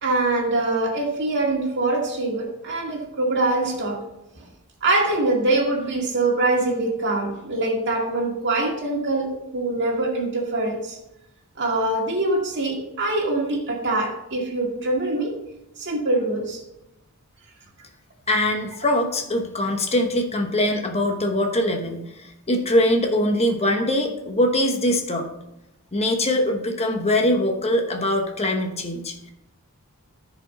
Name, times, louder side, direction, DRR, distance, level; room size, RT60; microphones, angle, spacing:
voice 1, 0.0-4.0 4.3-4.4 4.8-11.0 11.6-15.3 15.8-16.6, right 2 dB, 55° right, 0 dB, 2.1 m, -24 dB
voice 2, 18.3-25.3 25.9-29.1, left 1 dB, 30° left, 4 dB, 1.0 m, -22 dB
14.5 x 5.1 x 4.1 m, 0.86 s
head